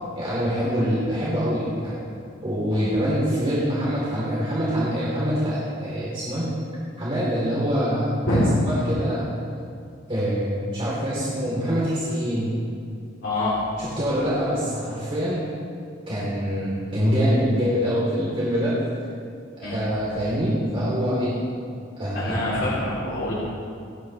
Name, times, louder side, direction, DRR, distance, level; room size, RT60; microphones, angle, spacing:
voice 1, 0.2-2.0 2.4-6.5 7.0-9.3 10.1-12.5 13.8-15.4 16.1-18.8 19.6-21.3 22.0-22.4, equal, 30° right, -9 dB, 3.7 m, -25 dB
voice 2, 13.2-13.6 19.6-19.8 22.1-23.3, left 1 dB, 85° left, -9 dB, 3.5 m, -25 dB
29.0 x 9.9 x 3.4 m, 2.3 s
head